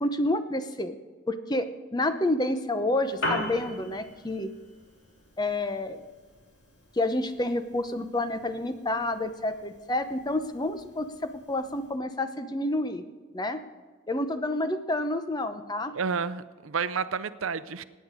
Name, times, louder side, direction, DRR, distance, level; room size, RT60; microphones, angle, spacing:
voice 1, 0.0-1.0 1.3-4.5 5.4-6.0 6.9-13.0 13.3-13.6 14.1-15.9, left 1 dB, 20° left, 9 dB, 0.7 m, -29 dB
Piano, 3.0-11.9, left 1 dB, 55° left, 3.5 m, -40 dB
voice 2, 15.9-17.8, right 5 dB, 80° right, 15 dB, 0.6 m, -30 dB
17.5 x 9.2 x 5.0 m, 1.4 s
head